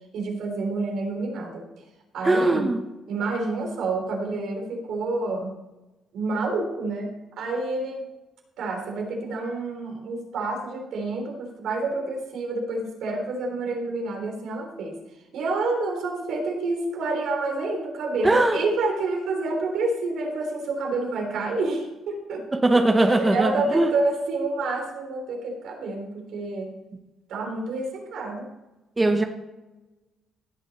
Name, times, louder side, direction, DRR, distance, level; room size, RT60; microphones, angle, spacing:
voice 1, 0.1-1.7 2.1-2.7 3.1-5.5 6.1-7.1 7.4-8.0 8.6-15.0 15.3-22.5 23.1-26.7 27.3-28.5, right 3 dB, 70° right, 2 dB, 3.4 m, -28 dB
voice 2, 2.2-2.8 18.2-18.6 22.6-23.9 29.0-29.2, right 2 dB, 15° right, 5 dB, 0.9 m, -20 dB
17.0 x 7.1 x 4.2 m, 1.0 s
cardioid pair, 135°, 0 cm